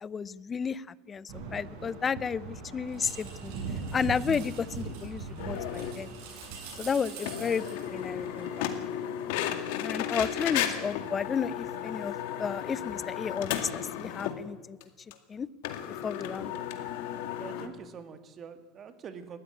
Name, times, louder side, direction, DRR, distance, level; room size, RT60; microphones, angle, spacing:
voice 1, 0.0-3.5 3.9-6.1 6.8-7.7 7.9-8.7 9.8-14.8 15.3-15.5 16.0-16.5, left 6 dB, 20° left, 20 dB, 0.6 m, -32 dB
sound 1, 1.3-8.7, right 4 dB, 65° right, 7.0 m, -40 dB
sound 2, 5.4-6.0 6.4-6.5 6.7-6.8 7.2-14.4 14.8-14.9 15.1-15.2 15.6-17.7, left 10 dB, 65° left, 2.1 m, -34 dB
voice 2, 17.4-19.4, right 6 dB, 30° right, 9 dB, 2.0 m, -45 dB
19.5 x 13.5 x 9.9 m, 1.2 s
supercardioid pair, 145°, 0 cm